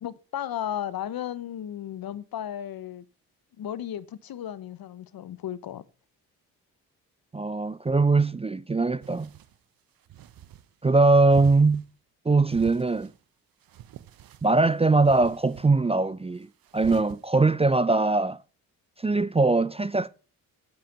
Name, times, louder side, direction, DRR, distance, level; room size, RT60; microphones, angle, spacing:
voice 1, 0.0-3.0 3.6-5.8, left 10 dB, 55° left, 1.1 m, -34 dB
voice 2, 7.3-9.3 10.8-11.8 12.3-13.1 14.4-16.5 16.7-18.4 19.0-20.1, right 3 dB, 15° right, 0.5 m, -21 dB
sound 1, 9.0-9.6 10.1-10.7 11.3-11.8 12.5-13.1 13.6-14.5 15.0-15.7 16.6-17.2, right 11 dB, 55° right, 0.9 m, -43 dB
9.3 x 8.7 x 5.9 m
hypercardioid pair, 45°, 43 cm